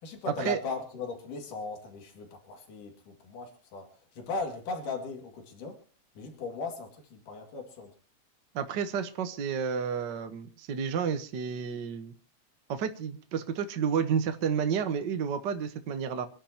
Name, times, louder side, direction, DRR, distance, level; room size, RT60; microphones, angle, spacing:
voice 1, 0.0-5.8 6.2-7.9, left 3 dB, 80° left, 3 dB, 4.0 m, -38 dB
voice 2, 8.5-12.1 12.7-16.3, right 7 dB, 60° right, 7 dB, 1.1 m, -31 dB
27.0 x 11.0 x 2.9 m, 0.38 s
omnidirectional pair, 3.7 m